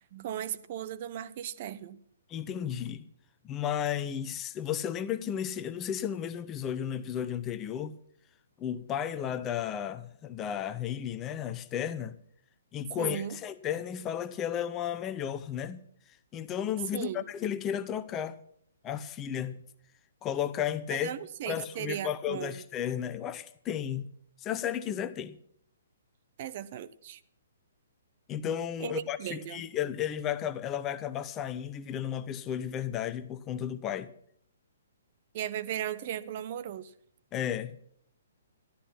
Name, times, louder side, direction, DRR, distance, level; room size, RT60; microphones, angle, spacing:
voice 1, 0.0-2.0 13.0-13.4 16.9-17.3 20.9-22.6 26.4-27.2 28.8-29.6 35.3-36.9, right 10 dB, 40° right, 0.7 m, -37 dB
voice 2, 2.3-3.0 3.4-7.9 8.6-12.2 12.7-15.9 16.3-18.4 18.8-19.6 20.2-21.1 21.5-24.1 24.4-25.4 28.3-34.1 37.3-37.7, left 9 dB, 20° left, 0.8 m, -33 dB
13.0 x 12.5 x 5.9 m
figure-of-eight pair, 125°, 0 cm